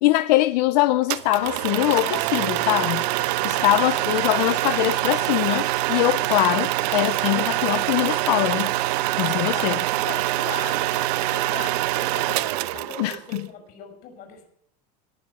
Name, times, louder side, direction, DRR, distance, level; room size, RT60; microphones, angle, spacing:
voice 1, 0.0-3.0 3.4-8.7 9.2-9.8 13.0-13.4, left 17 dB, 85° left, 0.7 m, -22 dB
sound 1, 1.1-13.4, right 16 dB, 80° right, 1.0 m, -25 dB
voice 2, 9.4-14.4, left 7 dB, 45° left, 6.9 m, -39 dB
18.0 x 7.8 x 9.4 m
cardioid pair, 155°, 21 cm